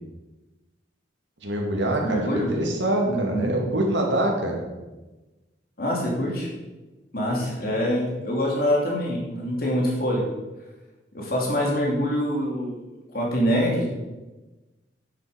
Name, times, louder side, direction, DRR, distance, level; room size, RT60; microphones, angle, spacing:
voice 1, 1.4-4.6, right 1 dB, 75° right, 0 dB, 2.3 m, -25 dB
voice 2, 2.0-2.5 3.0-3.5 5.8-6.5 7.1-10.2 11.1-12.8 13.1-13.9, equal, 50° left, -2 dB, 2.9 m, -25 dB
9.7 x 8.0 x 5.1 m, 1.1 s
head